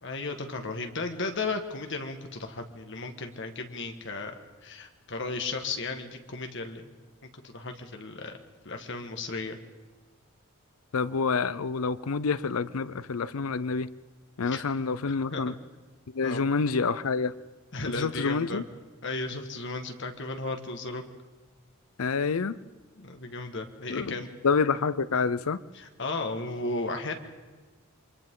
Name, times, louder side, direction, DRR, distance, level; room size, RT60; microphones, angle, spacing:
voice 1, 0.0-4.3 4.6-6.9 7.4-8.4 8.6-9.6 14.5-14.6 15.3-15.6 16.2-16.4 17.7-18.6 19.0-21.0 23.0-24.3 25.8-27.1, left 3 dB, 55° left, 5 dB, 1.7 m, -35 dB
voice 2, 10.9-13.9 14.4-15.5 16.1-17.3 17.8-18.6 22.0-22.6 23.9-24.2 24.4-25.6, left 4 dB, 80° left, 16 dB, 0.6 m, -27 dB
28.0 x 24.0 x 3.8 m, 1.3 s
head